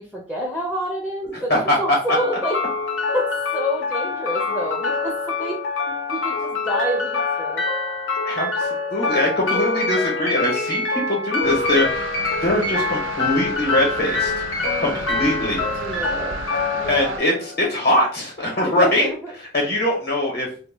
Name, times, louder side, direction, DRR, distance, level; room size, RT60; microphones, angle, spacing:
voice 1, 0.0-2.6 3.1-5.6 6.1-7.6 14.6-15.0 15.7-16.4 16.7-17.2 18.6-19.3, equal, 5° left, -2 dB, 0.4 m, -28 dB
voice 2, 1.3-1.8 8.2-12.1 12.4-14.5 14.8-15.6 16.9-19.1 19.5-20.5, left 1 dB, 55° left, -3 dB, 0.7 m, -22 dB
sound 1, 2.1-18.1, left 3 dB, 90° left, 0.7 m, -25 dB
sound 2, 11.4-17.2, right 5 dB, 85° right, 0.3 m, -34 dB
2.1 x 2.1 x 3.2 m, 0.42 s
head